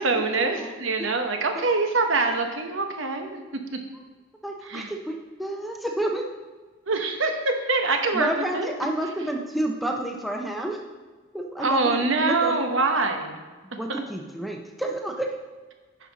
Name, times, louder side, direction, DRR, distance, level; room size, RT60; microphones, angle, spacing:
voice 1, 0.0-3.4 4.7-4.9 6.9-8.7 11.6-13.4, right 3 dB, 70° right, 5 dB, 1.0 m, -24 dB
voice 2, 4.4-6.2 8.1-10.8 11.3-11.8 12.2-12.5 13.8-15.3, right 1 dB, ahead, 1 dB, 0.6 m, -30 dB
9.8 x 5.4 x 4.0 m, 1.3 s
head